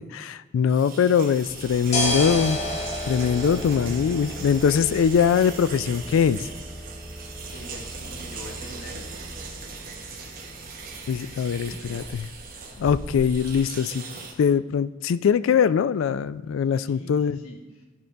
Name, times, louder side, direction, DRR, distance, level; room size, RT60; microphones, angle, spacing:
voice 1, 0.0-2.6 3.1-6.5 11.1-12.0 12.8-14.0 14.4-17.4, left 7 dB, 75° left, 15 dB, 0.3 m, -22 dB
sound 1, 0.7-14.3, right 5 dB, 45° right, 1.1 m, -40 dB
sound 2, 1.4-13.5, left 1 dB, 35° left, 1.0 m, -34 dB
voice 2, 7.5-9.1 11.5-12.2 16.7-17.9, left 1 dB, 90° left, 0 dB, 1.4 m, -44 dB
11.5 x 5.3 x 3.3 m, 1.3 s
head